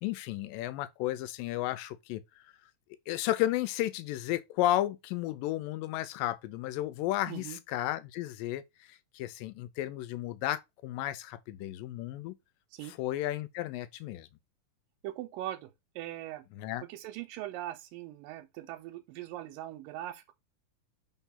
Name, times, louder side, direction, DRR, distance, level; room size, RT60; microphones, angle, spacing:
voice 1, 0.0-2.2 3.1-12.4 12.9-14.3 16.6-16.9, left 14 dB, 85° left, 2.2 m, -33 dB
voice 2, 7.3-7.6 12.7-12.9 15.0-16.5 16.9-20.3, right 14 dB, 90° right, 2.3 m, -41 dB
4.5 x 4.2 x 5.6 m
omnidirectional pair, 4.0 m